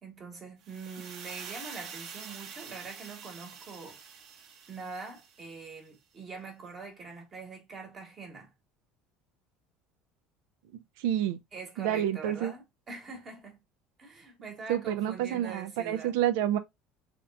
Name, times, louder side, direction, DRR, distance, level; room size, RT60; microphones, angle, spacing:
voice 1, 0.0-4.0 4.7-8.5 11.5-13.6 14.0-16.1, right 4 dB, 30° right, 1.2 m, -44 dB
sound 1, 0.6-5.7, right 6 dB, 45° right, 0.8 m, -46 dB
voice 2, 10.7-11.4 11.8-12.5 14.7-16.6, right 11 dB, 85° right, 0.5 m, -29 dB
3.4 x 2.9 x 2.3 m
cardioid pair, 155°, 0 cm